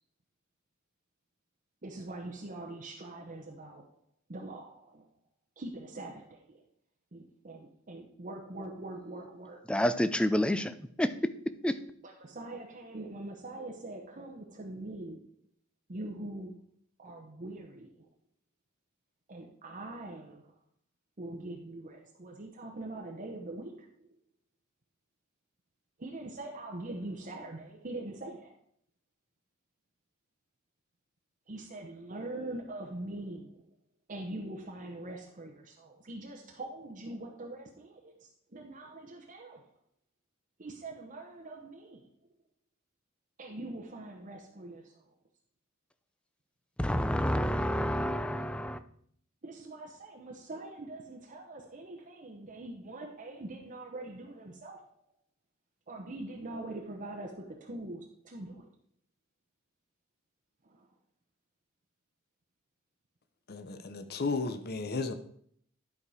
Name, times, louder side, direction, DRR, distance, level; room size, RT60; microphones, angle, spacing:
voice 1, 1.8-3.9 4.3-5.1 5.6-6.6 7.1-9.6 12.0-15.3 15.9-16.6 17.0-18.1 19.3-20.5 21.2-24.2 26.0-28.6 31.5-33.7 34.1-39.7 40.6-42.1 43.4-45.1 49.4-55.0 55.9-58.7 60.6-60.9, right 2 dB, 40° right, 0.9 m, -43 dB
voice 2, 9.7-11.8 46.8-48.8, equal, 5° left, 0.4 m, -29 dB
voice 3, 63.5-65.1, left 3 dB, 50° left, 0.7 m, -34 dB
11.0 x 4.8 x 4.9 m
head